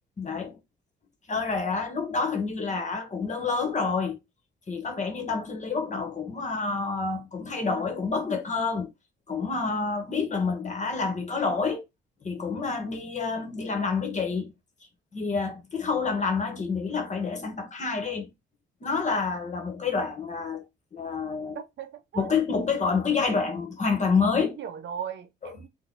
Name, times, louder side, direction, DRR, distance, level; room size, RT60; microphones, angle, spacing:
voice 1, 0.2-0.6 1.3-4.2 4.7-8.9 9.3-11.8 12.2-14.5 15.1-18.3 18.8-20.6 20.9-21.6 22.1-24.5, left 4 dB, 35° left, 1.5 m, -28 dB
voice 2, 21.5-22.3 24.4-25.7, right 8 dB, 65° right, 0.8 m, -38 dB
4.1 x 2.6 x 4.0 m
cardioid pair, 90°, 20 cm